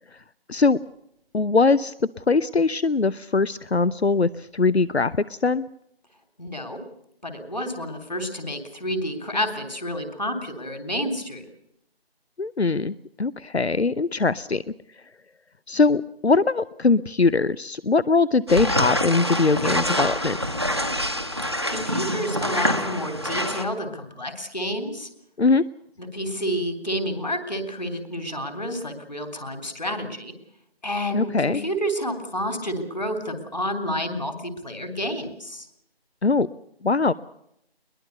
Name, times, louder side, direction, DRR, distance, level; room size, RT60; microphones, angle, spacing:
voice 1, 1.3-5.7 12.4-14.6 15.7-20.4 25.4-25.6 31.1-31.6 36.2-36.5 36.8-37.1, left 4 dB, 85° left, 19 dB, 0.8 m, -21 dB
voice 2, 6.4-6.8 7.2-11.4 21.7-25.1 26.0-30.3 30.8-35.7, equal, 45° left, 7 dB, 3.5 m, -29 dB
sound 1, 18.5-23.6, equal, 25° right, 1.1 m, -26 dB
22.0 x 21.0 x 6.7 m, 0.75 s
figure-of-eight pair, 170°, 31 cm